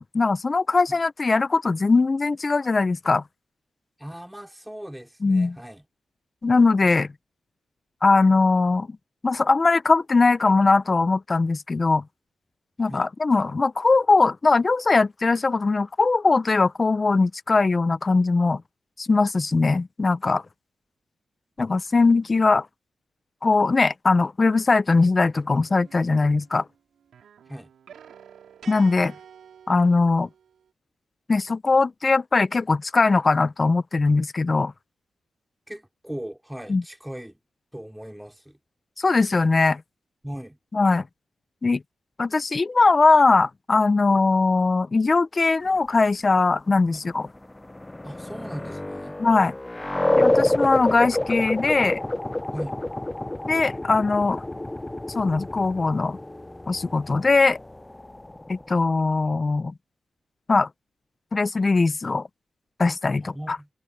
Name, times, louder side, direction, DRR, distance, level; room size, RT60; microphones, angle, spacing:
voice 1, 0.0-3.2 5.2-5.6 6.4-7.1 8.0-9.0 9.2-12.0 12.8-18.6 19.0-20.4 21.6-22.7 23.4-26.6 28.7-29.1 29.7-30.3 31.3-34.7 36.7-36.8 39.0-39.8 40.7-41.1 41.6-41.8 42.2-47.3 49.2-49.5 50.2-52.0 53.5-54.4 55.1-56.2 56.7-57.6 58.5-59.7 60.5-60.7 61.3-62.3 62.8-63.6, left 3 dB, 40° left, 0.8 m, -20 dB
voice 2, 4.0-5.8 12.9-13.1 27.4-27.7 35.7-37.4 37.7-38.6 40.2-40.6 46.9-47.0 48.0-49.2 52.5-52.8 63.2-63.7, equal, 5° right, 3.4 m, -38 dB
sound 1, 25.7-26.7 27.1-30.6, right 8 dB, 85° right, 3.7 m, -49 dB
sound 2, 47.4-58.8, left 1 dB, 15° left, 0.5 m, -28 dB
cardioid pair, 65°, 0 cm